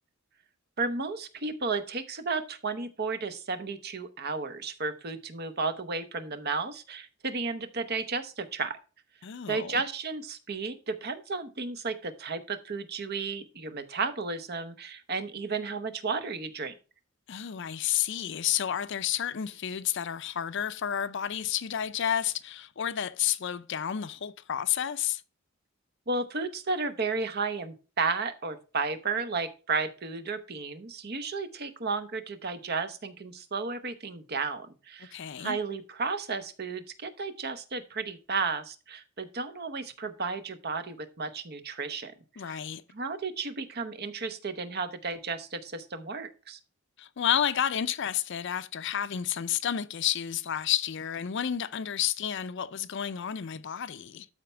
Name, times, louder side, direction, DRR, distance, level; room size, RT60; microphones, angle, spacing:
voice 1, 0.8-8.8 9.5-16.7 26.1-42.1 42.4-42.6 42.9-46.6, right 4 dB, 50° right, 0.9 m, -33 dB
voice 2, 9.2-9.8 17.3-25.2 35.1-35.6 42.4-42.8 47.0-54.3, left 9 dB, 60° left, 0.5 m, -31 dB
12.5 x 4.4 x 3.3 m
head